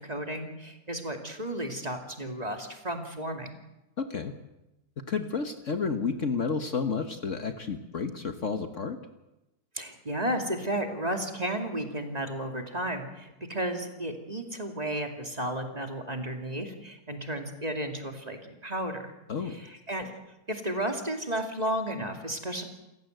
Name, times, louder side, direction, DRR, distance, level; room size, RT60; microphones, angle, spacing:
voice 1, 0.0-3.5 9.7-19.0 19.5-20.1 20.5-22.6, right 1 dB, 25° right, 4 dB, 2.6 m, -33 dB
voice 2, 4.0-4.3 5.1-9.0 19.3-19.6, left 5 dB, 50° left, 7 dB, 1.5 m, -31 dB
28.5 x 15.5 x 8.0 m, 0.97 s
omnidirectional pair, 1.8 m